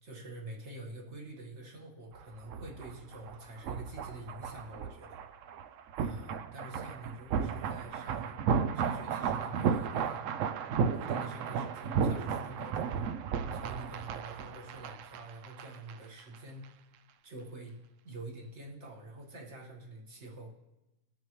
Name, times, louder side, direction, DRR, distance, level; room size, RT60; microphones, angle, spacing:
voice 1, 0.0-5.2 6.0-8.4 8.7-10.2 10.9-13.1 13.5-16.8 17.2-17.7 18.0-20.5, right 1 dB, 50° right, -1 dB, 1.9 m, -46 dB
sound 1, 2.1-16.4, right 6 dB, 70° right, 0.8 m, -34 dB
19.0 x 6.4 x 3.1 m, 1.0 s
omnidirectional pair, 1.5 m